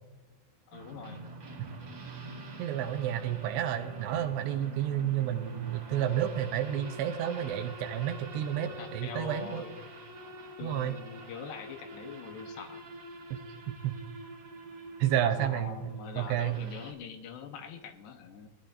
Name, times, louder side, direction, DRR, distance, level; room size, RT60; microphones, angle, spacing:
voice 1, 0.7-1.3 8.6-9.8 10.6-12.9 15.4-18.5, left 6 dB, 80° left, 5 dB, 3.0 m, -44 dB
sound 1, 0.7-16.9, right 2 dB, 45° right, 1.4 m, -46 dB
voice 2, 2.6-9.6 10.6-11.0 13.3-13.4 13.7-14.0 15.0-16.6, right 10 dB, 90° right, 5 dB, 2.9 m, -31 dB
20.5 x 11.0 x 2.6 m, 1.1 s
omnidirectional pair, 5.0 m